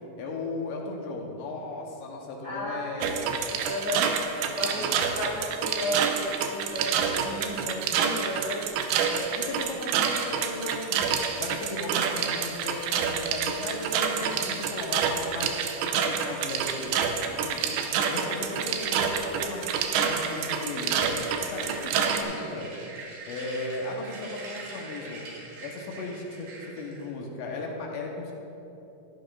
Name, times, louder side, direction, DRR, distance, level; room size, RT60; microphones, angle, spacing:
voice 1, 0.2-3.2 4.6-5.2 7.2-8.2 9.1-11.0 11.4-15.6 15.9-17.6 18.0-22.7 23.3-25.2 25.6-28.3, left 2 dB, 80° left, -1 dB, 3.2 m, -36 dB
voice 2, 2.4-4.2 4.5-7.3 7.6-8.7 14.3-14.4, equal, 30° right, -10 dB, 2.1 m, -34 dB
sound 1, 3.0-22.2, right 7 dB, 85° right, 3.0 m, -28 dB
sound 2, 20.0-27.1, right 3 dB, 65° right, 3.2 m, -44 dB
14.5 x 11.0 x 2.5 m, 2.9 s
omnidirectional pair, 5.2 m